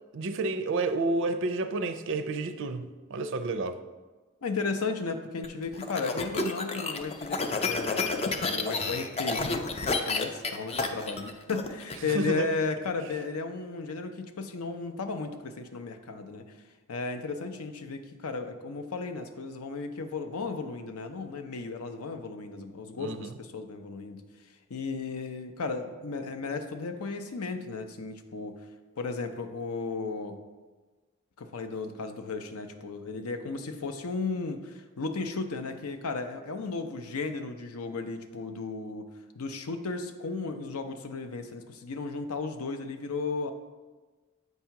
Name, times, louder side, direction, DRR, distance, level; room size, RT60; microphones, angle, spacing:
voice 1, 0.1-3.8 12.0-12.5 23.0-23.3, right 3 dB, 55° right, 0.4 m, -30 dB
voice 2, 4.4-16.5 16.9-24.2 24.7-28.6 29.0-30.4 31.4-39.1 39.4-43.5, left 4 dB, 75° left, 0.6 m, -34 dB
sound 1, 5.4-12.0, left 3 dB, 25° left, 0.4 m, -30 dB
8.0 x 2.8 x 5.7 m
head